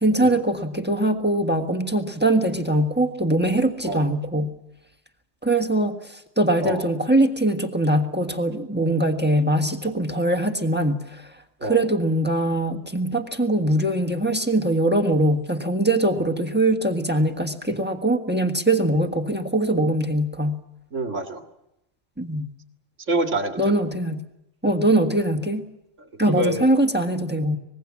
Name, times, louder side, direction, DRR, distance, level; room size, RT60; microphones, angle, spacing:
voice 1, 0.0-4.5 5.4-11.3 11.6-20.6 22.2-22.5 23.6-24.2 24.6-25.6 26.2-27.6, right 1 dB, 10° right, 5 dB, 1.5 m, -22 dB
voice 2, 20.9-21.4 23.1-23.7 26.3-26.7, right 2 dB, 80° right, 4 dB, 2.5 m, -26 dB
25.0 x 21.0 x 7.4 m, 0.85 s
omnidirectional pair, 1.2 m